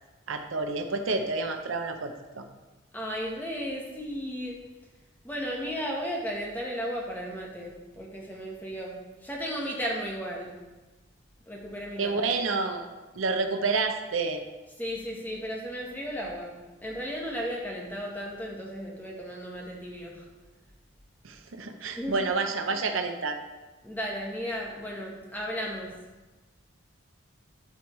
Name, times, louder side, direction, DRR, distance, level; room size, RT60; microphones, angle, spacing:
voice 1, 0.3-2.4 12.0-12.8 13.2-14.4 21.2-23.4, right 3 dB, 75° right, 5 dB, 0.7 m, -29 dB
voice 2, 2.9-4.6 5.2-10.6 11.5-12.1 14.8-20.3 22.0-22.2 23.8-26.0, equal, 10° left, -2 dB, 1.2 m, -35 dB
12.0 x 4.7 x 3.2 m, 1.2 s
head